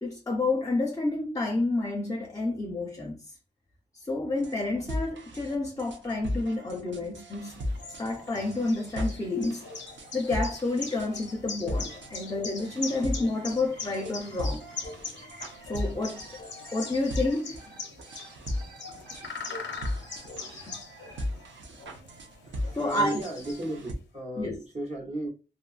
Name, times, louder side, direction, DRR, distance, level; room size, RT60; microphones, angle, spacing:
voice 1, 0.0-3.2 4.1-7.6 8.0-9.7 10.1-14.6 15.7-17.6 20.6-20.8 22.8-23.2 24.4-24.6, left 2 dB, 20° left, 0.5 m, -30 dB
sound 1, 4.4-23.9, left 1 dB, 85° right, 0.6 m, -37 dB
sound 2, 7.4-23.9, left 4 dB, 80° left, 0.5 m, -42 dB
sound 3, 13.6-21.2, right 1 dB, 60° right, 1.4 m, -52 dB
voice 2, 22.8-25.3, right 1 dB, 35° right, 0.9 m, -34 dB
2.6 x 2.3 x 2.4 m
wide cardioid pair, 75°, 19 cm